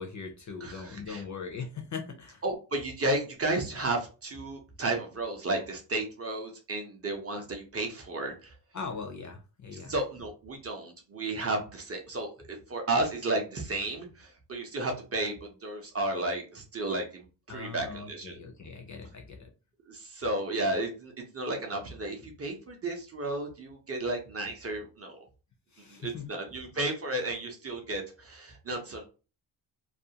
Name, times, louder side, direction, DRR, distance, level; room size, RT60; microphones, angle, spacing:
voice 1, 0.0-2.4 8.7-9.9 17.5-19.5 25.7-26.3, left 5 dB, 40° left, 3 dB, 0.4 m, -40 dB
voice 2, 0.6-1.2 2.4-8.5 9.7-18.4 19.9-25.3 25.9-29.0, right 2 dB, 30° right, 3 dB, 0.5 m, -33 dB
2.4 x 2.2 x 2.7 m, 0.33 s
wide cardioid pair, 160°, 47 cm